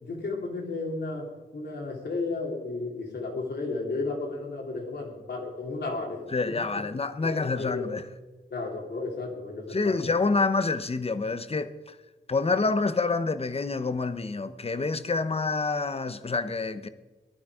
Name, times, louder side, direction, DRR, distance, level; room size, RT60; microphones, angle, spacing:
voice 1, 0.0-1.3 1.5-6.6 7.2-7.9 8.5-10.2, left 3 dB, 80° left, 3.3 m, -33 dB
voice 2, 6.3-8.0 9.7-11.9 12.3-16.9, left 3 dB, 35° left, 0.9 m, -27 dB
18.5 x 11.5 x 5.0 m
wide cardioid pair, 95°, 17 cm